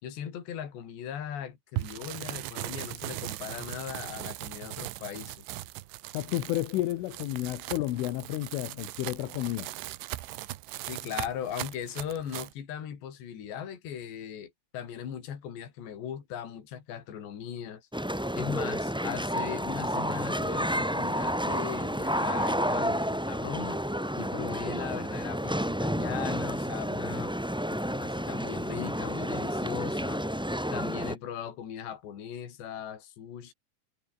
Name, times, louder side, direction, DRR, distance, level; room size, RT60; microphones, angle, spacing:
voice 1, 0.0-5.6 10.8-17.9 18.3-23.8 24.2-27.4 27.7-30.2 30.7-33.5, left 9 dB, 65° left, 5.6 m, -39 dB
sound 1, 1.8-12.5, right 17 dB, 80° right, 3.4 m, -39 dB
voice 2, 6.1-9.7, left 15 dB, 85° left, 3.9 m, -31 dB
sound 2, 17.9-31.1, equal, 5° right, 0.7 m, -30 dB
omnidirectional pair, 5.5 m